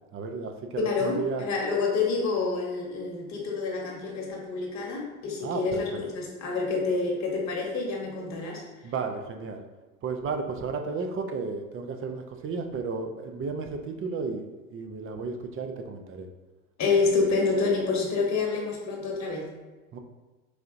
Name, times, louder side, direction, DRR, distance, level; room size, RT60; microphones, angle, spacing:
voice 1, 0.1-1.4 5.4-6.0 8.8-9.6 10.0-14.5 14.7-16.3 19.9-20.0, right 4 dB, 30° right, 5 dB, 0.5 m, -33 dB
voice 2, 0.8-8.6 16.8-19.5, left 4 dB, 40° left, -1 dB, 1.1 m, -28 dB
4.8 x 2.7 x 2.5 m, 1.2 s
hypercardioid pair, 75°, 41 cm